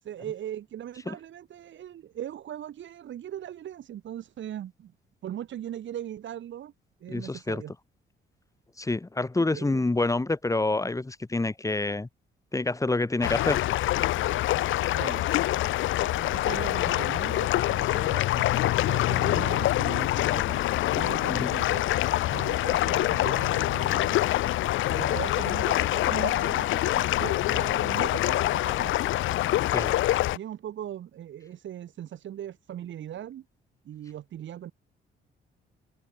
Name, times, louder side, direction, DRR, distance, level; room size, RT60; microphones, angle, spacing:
voice 1, 0.0-4.9 5.2-6.7 7.0-7.7 9.4-9.8 14.9-15.3 15.8-18.5 18.8-21.9 22.3-24.2 24.9-28.9 30.3-33.4 33.8-34.7, right 11 dB, 70° right, 6.6 m, -39 dB
voice 2, 7.1-7.6 8.8-12.1 12.5-13.6 21.3-21.5 29.7-29.9, left 2 dB, 15° left, 2.4 m, -27 dB
sound 1, 13.2-30.4, left 15 dB, 80° left, 0.7 m, -25 dB
cardioid pair, 90°, 20 cm